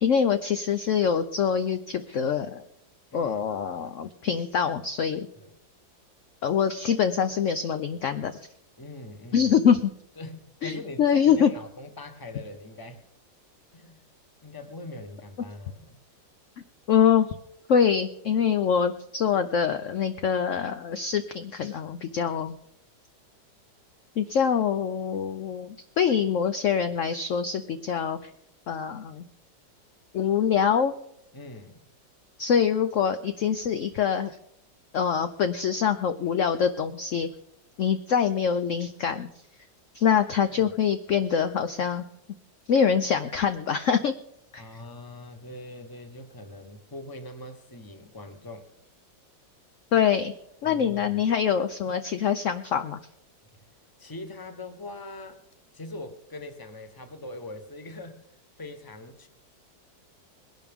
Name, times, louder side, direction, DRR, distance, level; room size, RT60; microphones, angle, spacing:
voice 1, 0.0-2.6 3.1-5.3 6.4-8.4 9.3-9.9 10.6-11.5 16.9-17.3 17.7-22.5 24.2-28.3 28.7-29.2 30.1-30.9 32.4-34.4 34.9-37.3 37.8-39.3 39.9-42.1 42.7-44.1 44.5-44.6 49.9-50.3 50.6-53.0, left 7 dB, 65° left, 9 dB, 0.7 m, -24 dB
voice 2, 3.1-3.5 5.4-5.6 8.8-9.5 10.2-13.0 13.7-14.0 14.4-16.0 31.3-31.9 40.5-40.7 44.6-48.7 50.6-51.2 54.0-55.4 55.7-58.2 58.6-59.3, left 2 dB, 15° left, 7 dB, 1.0 m, -42 dB
21.5 x 11.5 x 3.6 m, 0.75 s
omnidirectional pair, 2.0 m